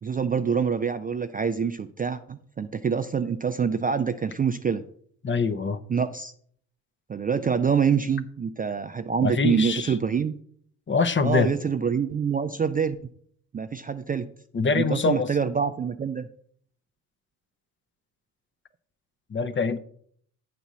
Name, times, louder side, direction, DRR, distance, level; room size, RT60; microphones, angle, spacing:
voice 1, 0.0-4.8 5.9-6.3 7.1-10.3 11.2-13.0 13.5-14.3 14.7-16.3, right 6 dB, 20° right, 9 dB, 0.4 m, -26 dB
voice 2, 5.2-5.8 9.2-9.9 10.9-11.5 14.5-15.3 19.3-19.8, left 4 dB, 25° left, 13 dB, 0.7 m, -24 dB
8.9 x 4.2 x 6.1 m, 0.62 s
hypercardioid pair, 55°, 44 cm